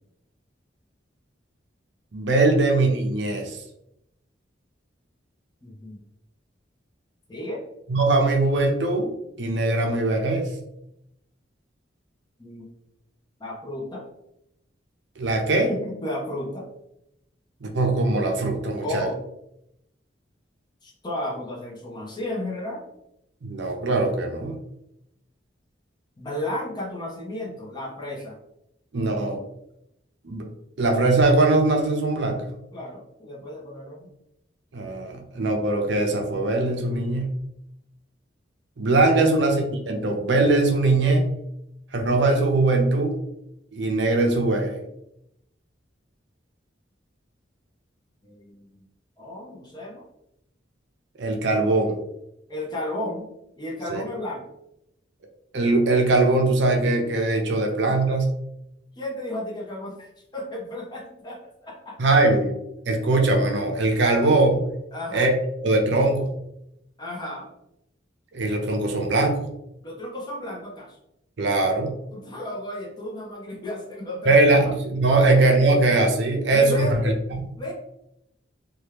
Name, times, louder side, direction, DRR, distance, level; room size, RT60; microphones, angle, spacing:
voice 1, 2.1-3.6 7.9-9.1 9.4-10.5 15.2-15.7 17.6-19.1 23.4-24.6 28.9-29.4 30.2-30.5 30.8-32.4 34.7-37.3 38.8-41.3 41.9-43.1 43.7-44.8 51.2-52.0 53.9-54.0 55.5-58.3 62.0-62.5 62.9-64.6 65.1-65.4 65.6-66.3 68.3-69.5 71.4-71.9 74.3-77.1, right 2 dB, 70° right, 3 dB, 0.5 m, -21 dB
voice 2, 5.6-6.0 7.3-7.6 12.4-12.7 13.4-14.0 15.7-16.7 18.8-19.2 20.8-22.8 26.2-28.4 32.7-34.1 39.0-39.2 48.2-48.7 49.2-50.0 52.5-53.3 53.6-54.4 57.9-58.0 59.0-62.1 64.9-65.3 67.0-67.5 69.8-71.0 72.1-74.7 75.2-75.3 76.5-77.2 77.6-77.7, left 1 dB, 25° left, -2 dB, 0.7 m, -33 dB
2.9 x 2.3 x 3.3 m, 0.82 s
head